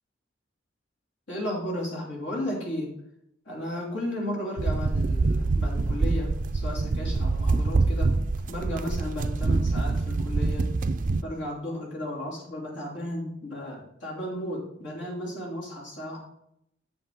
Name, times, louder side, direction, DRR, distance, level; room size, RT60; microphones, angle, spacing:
voice 1, 1.3-2.9 3.4-8.1 8.5-10.7 11.2-16.2, left 1 dB, 80° left, -3 dB, 3.0 m, -34 dB
sound 1, 4.6-11.2, right 3 dB, 45° right, 0.4 m, -25 dB
7.8 x 7.7 x 3.9 m, 0.76 s
head